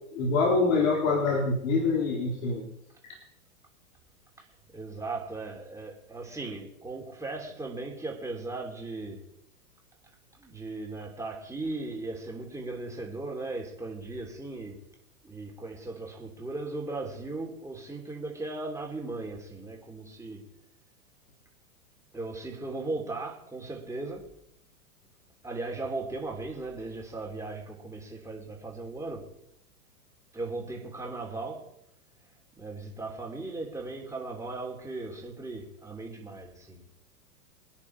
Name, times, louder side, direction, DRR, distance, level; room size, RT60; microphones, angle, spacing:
voice 1, 0.1-2.6, left 3 dB, 60° left, 4.0 m, -25 dB
voice 2, 4.7-9.2 10.4-14.8 15.2-20.4 22.1-24.3 25.4-29.3 30.3-31.7 32.6-36.9, right 3 dB, 5° right, 3.5 m, -37 dB
25.0 x 10.0 x 4.9 m
hypercardioid pair, 115°, 45 cm